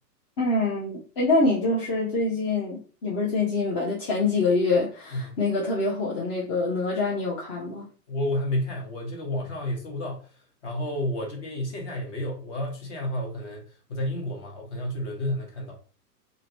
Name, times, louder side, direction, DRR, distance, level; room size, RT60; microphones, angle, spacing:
voice 1, 0.4-7.9, left 3 dB, 30° left, 0.6 m, -25 dB
voice 2, 8.1-10.3 10.6-13.6 13.9-15.7, left 1 dB, 45° left, 1.2 m, -30 dB
2.8 x 2.6 x 2.9 m
hypercardioid pair, 110°, 49 cm